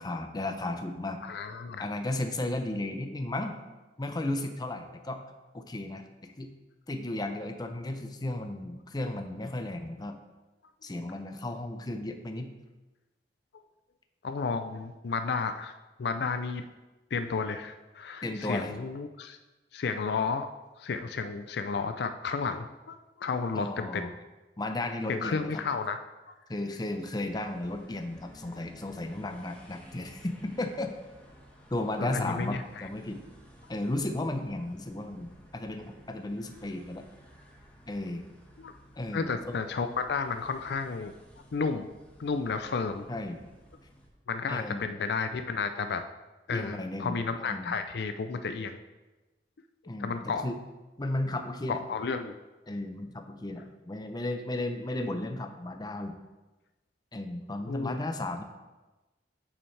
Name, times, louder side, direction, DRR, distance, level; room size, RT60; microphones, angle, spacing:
voice 1, 0.0-1.2 1.8-3.6 4.0-5.2 5.5-6.5 6.9-10.2 10.8-12.5 18.2-18.7 23.6-24.1 24.6-25.6 26.5-30.9 31.7-33.2 33.7-37.0 37.9-38.2 39.0-39.5 43.1-43.4 44.5-44.9 46.5-47.7 49.9-50.5 51.0-51.8 52.7-56.1 57.1-58.4, left 1 dB, 25° left, 6 dB, 0.6 m, -34 dB
voice 2, 1.2-1.8 13.5-13.6 14.2-15.7 16.0-16.6 17.1-19.4 19.7-20.5 20.8-24.1 25.1-26.0 32.0-32.9 38.6-38.7 39.1-41.1 41.5-41.9 42.2-43.1 44.3-46.0 46.5-48.8 50.0-50.4 51.7-52.4 57.7-58.0, left 4 dB, 65° left, 8 dB, 0.4 m, -32 dB
sound 1, 27.2-44.1, equal, 10° left, 1.2 m, -55 dB
8.8 x 6.9 x 3.3 m, 1.1 s
head